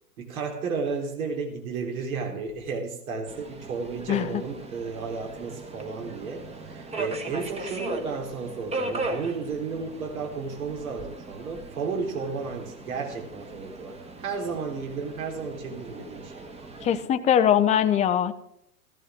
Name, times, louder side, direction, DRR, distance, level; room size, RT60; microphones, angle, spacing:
voice 1, 0.2-16.5, right 4 dB, 65° right, 2 dB, 3.9 m, -33 dB
Subway metro underground, 3.3-17.0, right 2 dB, 15° right, 1.4 m, -38 dB
voice 2, 16.8-18.3, left 9 dB, 15° left, 11 dB, 0.6 m, -21 dB
15.0 x 13.5 x 3.6 m, 0.73 s
hypercardioid pair, 115°, 46 cm